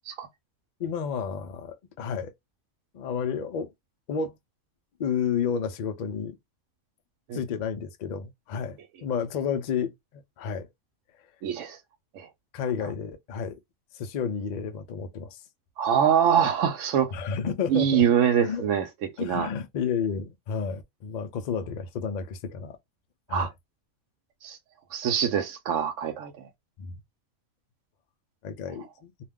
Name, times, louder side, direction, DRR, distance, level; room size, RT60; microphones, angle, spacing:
voice 1, 0.8-2.3 2.9-3.7 4.1-4.4 5.0-6.4 7.3-10.7 12.5-13.6 13.9-15.4 17.1-18.1 18.4-18.7 19.2-22.8 23.3-23.5 26.8-27.0 28.4-29.1, left 6 dB, 85° left, 0.4 m, -31 dB
voice 2, 11.4-11.8 12.1-12.3 15.8-17.1 17.7-18.8 19.2-19.5 23.3-23.5 24.4-24.6 24.9-26.5, right 9 dB, 70° right, 0.9 m, -24 dB
2.4 x 2.2 x 3.4 m
omnidirectional pair, 1.4 m